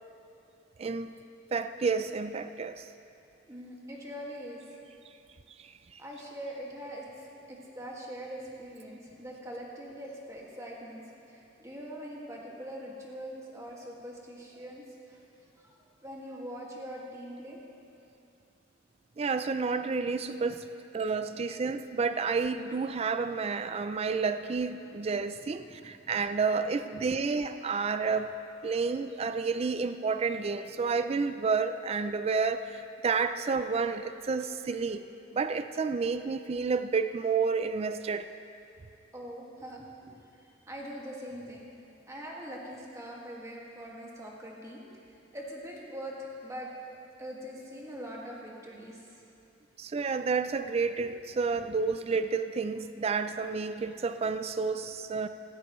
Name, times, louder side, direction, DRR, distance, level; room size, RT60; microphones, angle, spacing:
voice 1, 0.8-1.1 1.5-2.9 5.6-6.0 19.2-20.7 20.9-28.3 28.6-35.0 35.3-38.3 49.8-55.3, right 5 dB, 35° right, 10 dB, 0.4 m, -30 dB
voice 2, 3.5-4.6 6.0-14.8 15.1-15.2 15.6-15.8 16.0-17.6 39.1-41.7 42.1-44.8 45.3-46.7 47.2-49.0 51.5-51.6, equal, 15° right, -3 dB, 1.9 m, -42 dB
16.0 x 15.5 x 3.1 m, 2.7 s
head